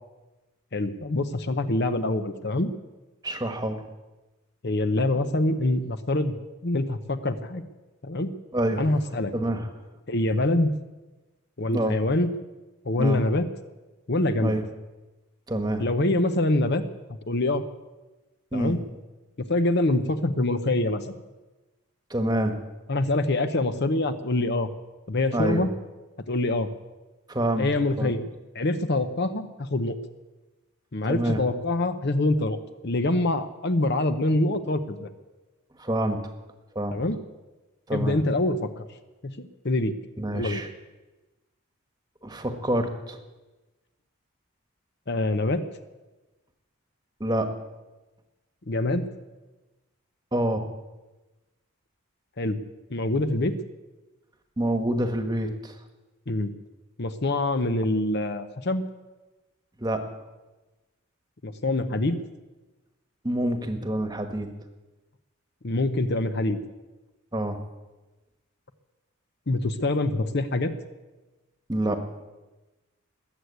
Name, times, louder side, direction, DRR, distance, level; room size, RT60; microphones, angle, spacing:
voice 1, 0.7-2.7 4.6-6.4 6.6-7.6 8.0-8.3 8.8-9.3 10.1-10.7 11.6-12.3 12.8-13.5 14.1-14.6 15.8-16.8 17.3-17.6 18.5-18.8 19.5-21.1 22.9-24.7 25.1-25.7 26.3-26.7 27.6-28.3 28.5-30.0 30.9-35.1 36.9-37.2 37.9-38.8 39.2-39.9 40.3-40.6 45.1-45.6 48.7-49.1 52.4-52.6 52.9-53.5 56.3-56.5 57.0-58.8 61.4-62.2 65.6-66.6 69.5-70.7, left 2 dB, 50° left, 9 dB, 0.8 m, -25 dB
voice 2, 3.2-3.8 8.5-8.9 9.3-9.7 11.7-12.0 13.0-13.2 14.4-14.6 15.5-15.8 18.5-18.8 22.1-22.6 25.3-25.6 27.3-27.7 28.0-28.1 31.1-31.4 35.8-36.2 36.7-37.0 37.9-38.2 40.2-40.7 42.2-43.2 47.2-47.5 50.3-50.7 54.6-55.7 59.8-60.0 63.2-64.5 67.3-67.6 71.7-72.0, right 1 dB, 20° right, 6 dB, 1.3 m, -27 dB
21.0 x 8.0 x 8.1 m, 1.1 s
head